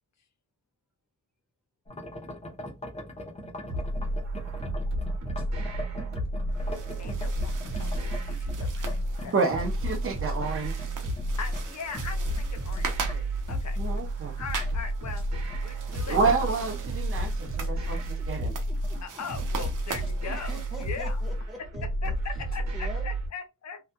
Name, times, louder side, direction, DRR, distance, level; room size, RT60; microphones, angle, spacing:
sound 1, 1.9-13.2 13.4-16.9 17.2-17.7 18.0-18.1 18.4-18.6 18.8-19.7 20.0-20.2, left 1 dB, 20° left, 0.6 m, -43 dB
sound 2, 3.7-23.3, right 1 dB, 60° right, 1.0 m, -31 dB
sound 3, 6.5-21.3, right 6 dB, 85° right, 0.7 m, -42 dB
voice 1, 7.0-9.3 11.4-13.8 14.4-15.2 15.6-16.2 19.0-21.2 22.0-23.8, left 4 dB, 60° left, 0.6 m, -40 dB
voice 2, 9.3-10.7 13.8-14.3 16.1-18.5, right 4 dB, 45° right, 0.7 m, -28 dB
voice 3, 18.0-19.2 19.9-22.2 22.7-23.1, left 1 dB, ahead, 1.0 m, -45 dB
2.8 x 2.3 x 2.2 m
wide cardioid pair, 170°, 31 cm